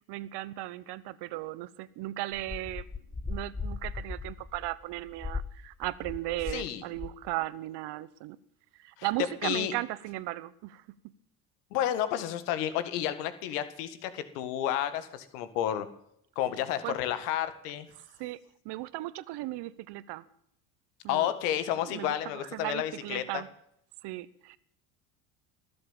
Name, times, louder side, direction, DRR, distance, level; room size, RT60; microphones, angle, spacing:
voice 1, 0.1-2.9 3.3-8.4 8.8-10.8 16.8-17.0 18.0-18.4 18.6-20.2 21.0-21.3 21.9-23.5 24.0-24.6, right 17 dB, 60° right, 17 dB, 1.1 m, -36 dB
sound 1, 2.3-6.7 6.9-7.3, left 4 dB, 10° left, 0.6 m, -38 dB
voice 2, 6.5-6.8 9.0-9.1 9.4-9.7 11.7-15.9 16.4-17.9 21.1-23.4, left 11 dB, 80° left, 12 dB, 1.9 m, -31 dB
20.0 x 7.8 x 8.9 m, 0.73 s
supercardioid pair, 90°, 46 cm